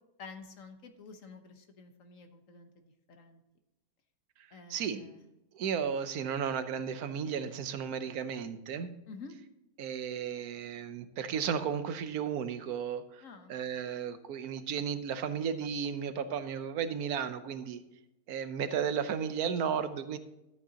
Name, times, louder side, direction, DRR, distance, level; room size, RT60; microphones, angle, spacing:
voice 1, 0.2-3.4 4.5-5.2 9.1-9.3 13.2-13.9, left 4 dB, 60° left, 6 dB, 1.4 m, -50 dB
voice 2, 4.7-5.1 5.5-8.9 9.8-13.2 13.5-17.8 18.3-20.2, right 7 dB, 80° right, 11 dB, 1.2 m, -34 dB
12.5 x 8.4 x 2.9 m, 0.93 s
omnidirectional pair, 1.6 m